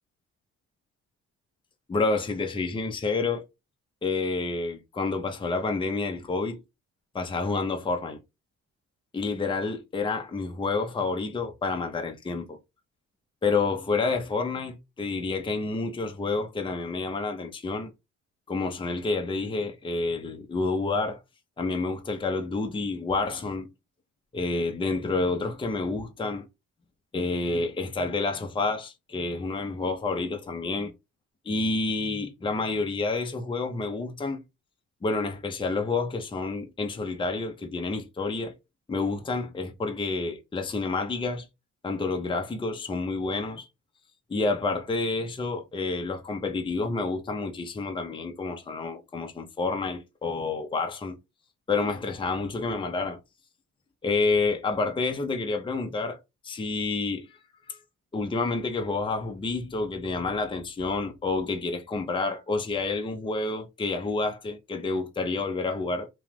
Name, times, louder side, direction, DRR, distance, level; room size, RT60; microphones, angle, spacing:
voice 1, 1.9-3.4 4.0-6.6 7.1-8.2 9.1-12.6 13.4-17.9 18.5-21.2 21.6-23.7 24.3-26.5 27.1-30.9 31.4-34.4 35.0-38.5 38.9-41.5 41.8-43.7 44.3-51.2 51.7-53.2 54.0-56.2 56.4-57.4 57.7-57.8 58.1-66.1, left 3 dB, 15° left, 0.6 m, -29 dB
3.0 x 2.3 x 3.4 m
cardioid pair, 90°, 30 cm